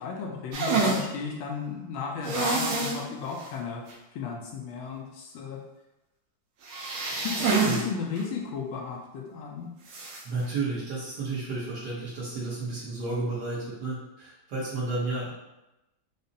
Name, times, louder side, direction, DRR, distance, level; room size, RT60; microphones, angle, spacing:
voice 1, 0.0-3.8 4.1-5.6 7.2-9.7, left 5 dB, 75° left, -1 dB, 1.2 m, -34 dB
sound 1, 0.5-1.0 2.2-3.0 3.4-3.5 3.9-4.0 6.6-7.8 8.2-8.3 9.9-10.2, right 4 dB, 80° right, 1.5 m, -27 dB
voice 2, 10.2-15.4, right 3 dB, 60° right, -7 dB, 1.2 m, -32 dB
5.0 x 2.0 x 2.7 m, 0.95 s
omnidirectional pair, 2.3 m